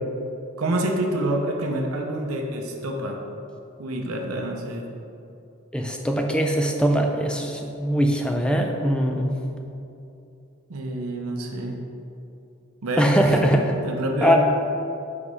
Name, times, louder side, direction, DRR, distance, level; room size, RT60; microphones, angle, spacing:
voice 1, 0.6-3.2 3.8-4.8 10.7-11.8 12.8-13.5 13.8-14.4, right 1 dB, 85° right, 1 dB, 0.7 m, -27 dB
voice 2, 5.7-9.3 13.0-13.7 14.2-14.4, equal, 5° left, 2 dB, 0.4 m, -21 dB
5.0 x 4.9 x 5.4 m, 2.7 s
head